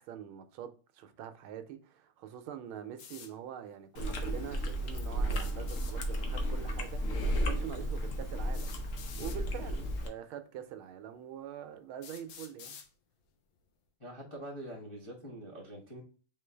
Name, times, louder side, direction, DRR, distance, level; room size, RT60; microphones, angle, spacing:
voice 1, 0.0-12.8, right 10 dB, 80° right, 1.4 m, -45 dB
sound 1, 3.0-3.3 5.2-6.0 7.4-7.5 8.5-9.4 10.4-10.5 11.2-11.3 12.0-12.9, left 7 dB, 75° left, 1.5 m, -49 dB
Chewing mastication, 4.0-10.1, equal, 60° left, 0.8 m, -33 dB
voice 2, 14.0-16.0, right 1 dB, 25° left, 0.6 m, -45 dB
3.8 x 3.8 x 3.3 m
omnidirectional pair, 2.3 m